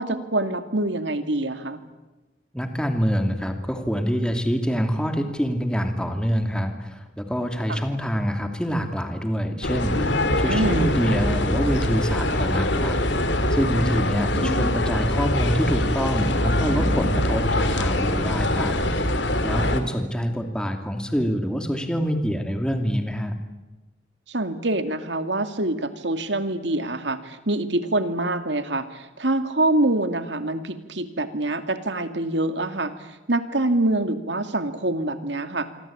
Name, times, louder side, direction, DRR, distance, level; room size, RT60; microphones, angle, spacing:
voice 1, 0.0-1.8 10.4-10.9 19.6-19.8 24.3-32.9 33.3-35.7, right 2 dB, 70° right, 9 dB, 2.4 m, -25 dB
voice 2, 2.5-13.0 13.5-18.7 19.1-23.3, equal, 5° left, 5 dB, 2.6 m, -26 dB
sound 1, 9.6-19.8, left 1 dB, 70° left, 3.0 m, -23 dB
27.0 x 24.0 x 8.8 m, 1.1 s
head